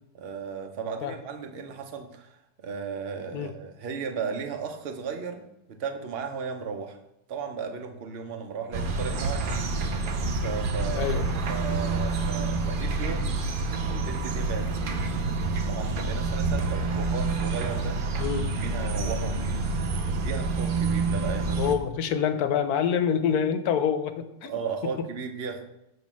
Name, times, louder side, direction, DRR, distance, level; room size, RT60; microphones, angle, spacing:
voice 1, 0.1-5.4 5.7-7.0 7.3-9.6 10.4-11.1 11.5-13.3 13.9-15.0 15.7-18.0 18.6-19.3 20.2-21.6 24.4-25.6, right 6 dB, 50° right, 5 dB, 0.8 m, -35 dB
sound 1, 8.7-21.8, right 3 dB, 70° right, 0.5 m, -28 dB
voice 2, 10.9-11.4 18.2-18.5 21.6-25.1, left 8 dB, 75° left, 9 dB, 1.1 m, -27 dB
7.2 x 3.0 x 6.0 m, 0.88 s
omnidirectional pair, 1.7 m